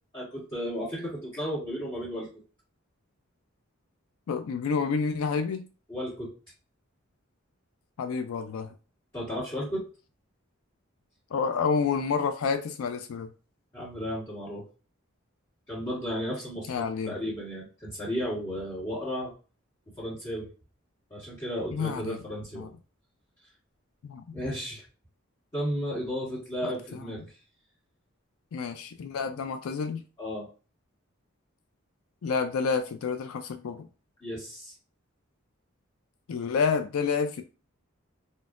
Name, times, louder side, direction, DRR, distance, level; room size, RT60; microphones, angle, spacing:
voice 1, 0.1-2.3 5.9-6.3 9.1-9.9 13.7-14.6 15.7-19.3 20.0-20.5 21.1-22.7 24.3-24.8 25.5-27.3 30.2-30.5 34.2-34.7, equal, 25° left, 1.4 m, -34 dB
voice 2, 4.3-5.6 8.0-8.7 11.3-13.3 16.7-17.1 21.7-22.2 22.6-22.7 24.0-24.2 26.6-27.1 28.5-30.0 32.2-33.9 36.3-37.4, left 5 dB, 85° left, 0.4 m, -29 dB
4.1 x 2.0 x 2.3 m
head